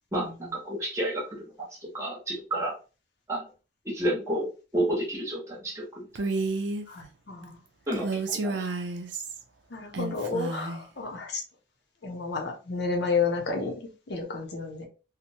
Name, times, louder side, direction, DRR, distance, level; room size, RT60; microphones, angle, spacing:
voice 1, 0.1-1.5 1.8-2.7 3.3-3.4 3.8-4.5 4.7-6.1 7.9-8.7, right 1 dB, 15° right, -4 dB, 1.0 m, -30 dB
Female speech woman speaking, 6.2-6.9 7.9-9.4 9.9-10.8, right 3 dB, 75° right, 0.5 m, -31 dB
voice 2, 6.9-7.6 9.7-11.4 12.0-14.8, left 4 dB, 65° left, 2 dB, 0.7 m, -31 dB
2.8 x 2.1 x 2.7 m, 0.32 s
head